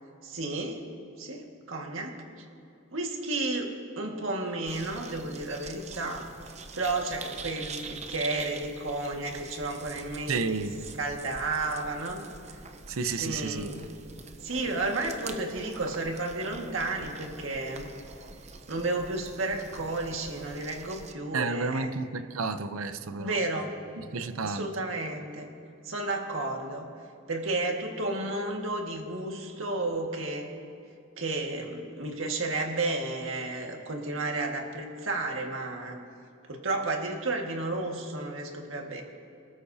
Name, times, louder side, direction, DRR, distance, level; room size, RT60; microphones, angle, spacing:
voice 1, 0.2-0.8 1.2-2.1 2.9-6.3 6.8-10.7 11.0-12.3 13.1-13.9 14.4-17.9 18.7-21.9 23.2-23.7 24.4-25.5 25.8-26.9 27.3-30.5 31.2-36.0 36.5-39.0, right 2 dB, 70° right, 1.8 m, -32 dB
sound 1, 4.7-21.1, right 4 dB, 30° right, 0.8 m, -45 dB
voice 2, 10.3-10.8 12.9-13.7 21.3-23.4 24.0-24.7, right 4 dB, 90° right, 0.7 m, -31 dB
24.5 x 13.5 x 2.8 m
head